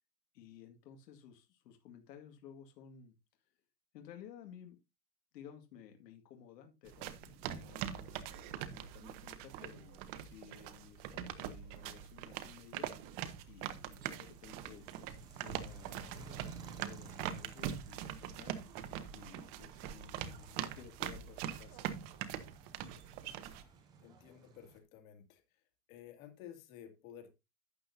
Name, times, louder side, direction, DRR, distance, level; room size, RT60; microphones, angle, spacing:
voice 1, 0.3-3.1 3.9-4.8 5.3-18.6 19.1-22.0, left 8 dB, 80° left, 2.1 m, -56 dB
sound 1, 6.9-23.6, right 10 dB, 35° right, 1.0 m, -43 dB
sound 2, 13.7-24.8, right 5 dB, 10° right, 0.4 m, -56 dB
voice 2, 24.0-25.4 25.9-27.3, left 10 dB, 55° left, 2.5 m, -53 dB
12.0 x 8.3 x 2.7 m
supercardioid pair, 165°, 49 cm